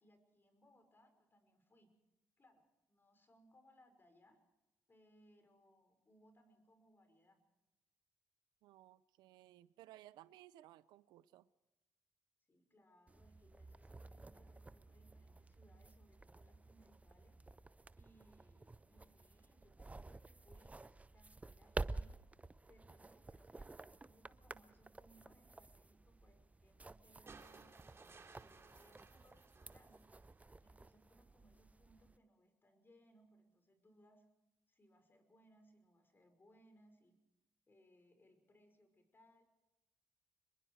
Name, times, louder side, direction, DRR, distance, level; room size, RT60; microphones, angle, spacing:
voice 1, 0.0-1.9 2.4-4.4 4.9-7.4 12.5-17.4 18.0-20.7 21.1-22.1 22.7-30.1 30.6-34.3 34.7-37.2 37.7-39.4, equal, 30° left, 7 dB, 5.6 m, -69 dB
voice 2, 8.6-11.5, right 14 dB, 80° right, 17 dB, 0.6 m, -60 dB
sound 1, 13.1-32.2, right 3 dB, 20° right, 0.8 m, -52 dB
sound 2, 27.3-30.6 31.9-32.0, right 4 dB, 35° right, 3.3 m, -61 dB
25.0 x 22.0 x 4.8 m, 0.98 s
supercardioid pair, 55°, 7 cm